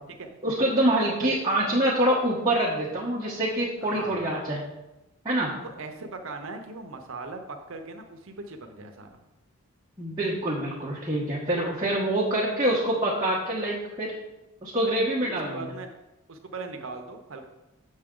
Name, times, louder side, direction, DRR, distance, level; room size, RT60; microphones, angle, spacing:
voice 1, 0.4-4.6 5.2-5.5 10.0-14.1 14.6-15.6, right 1 dB, 15° right, -7 dB, 1.1 m, -25 dB
voice 2, 3.8-4.3 5.6-9.2 15.2-15.9 16.3-17.5, right 3 dB, 65° right, 5 dB, 0.7 m, -39 dB
7.3 x 6.8 x 3.8 m, 0.99 s
head